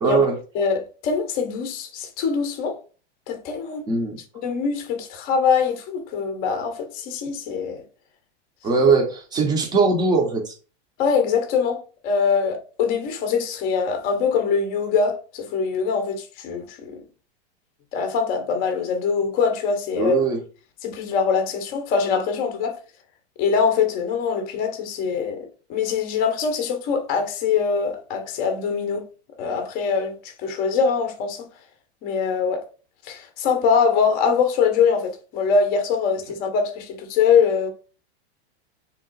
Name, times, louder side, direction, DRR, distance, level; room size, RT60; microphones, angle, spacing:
voice 1, 0.0-0.4 3.9-4.2 8.6-10.5 20.0-20.4, right 4 dB, 10° right, 0.6 m, -20 dB
voice 2, 0.5-2.8 3.3-3.8 4.4-7.8 11.0-17.0 17.9-20.2 20.8-22.8 23.4-29.0 29.4-30.1 30.4-31.5 32.0-32.6 33.0-37.7, left 6 dB, 25° left, 0.7 m, -23 dB
3.6 x 2.9 x 3.8 m
supercardioid pair, 160°, 33 cm